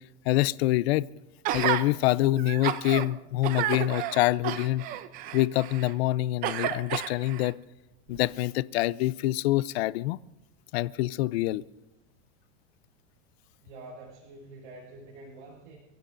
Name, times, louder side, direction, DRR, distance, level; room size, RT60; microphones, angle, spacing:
voice 1, 0.3-1.1 1.5-4.8 5.3-7.6 8.1-10.2 10.7-11.6, left 16 dB, 60° left, 0.5 m, -26 dB
Gasp, 1.4-1.8 2.4-3.1 3.4-5.9 6.4-7.5 8.1-8.2, right 12 dB, 25° right, 0.4 m, -31 dB
voice 2, 13.6-15.8, right 2 dB, 85° right, 5.8 m, -47 dB
28.5 x 16.0 x 2.6 m
supercardioid pair, 155°, 36 cm